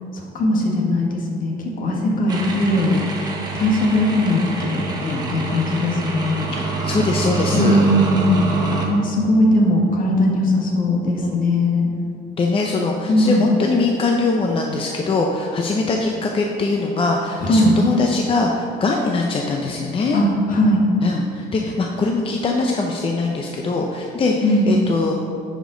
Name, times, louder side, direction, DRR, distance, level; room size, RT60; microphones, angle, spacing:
voice 1, 0.1-2.9 3.5-4.8 5.3-6.4 7.5-8.5 8.7-11.9 13.1-13.5 17.4-17.7 20.1-20.9 24.4-24.7, left 1 dB, 55° left, -1 dB, 1.7 m, -19 dB
sound 1, 2.3-8.9, right 3 dB, 25° right, 1.4 m, -26 dB
voice 2, 6.5-7.8 11.2-11.4 12.4-20.2 21.0-25.1, left 3 dB, 30° left, 1 dB, 0.6 m, -22 dB
10.0 x 5.2 x 3.9 m, 2.5 s
cardioid pair, 110°, 17 cm